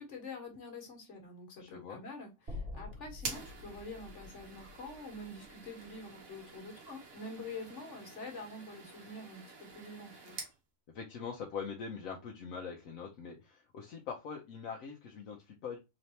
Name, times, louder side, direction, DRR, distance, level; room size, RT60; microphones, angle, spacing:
voice 1, 0.0-10.4, left 2 dB, 60° left, 1.6 m, -46 dB
voice 2, 1.6-2.0 10.9-15.8, left 6 dB, 80° left, 1.2 m, -43 dB
sound 1, 2.5-6.7, left 3 dB, 45° right, 1.8 m, -47 dB
sound 2, 3.2-10.6, right 4 dB, 85° right, 1.6 m, -48 dB
3.9 x 3.3 x 2.8 m
omnidirectional pair, 1.4 m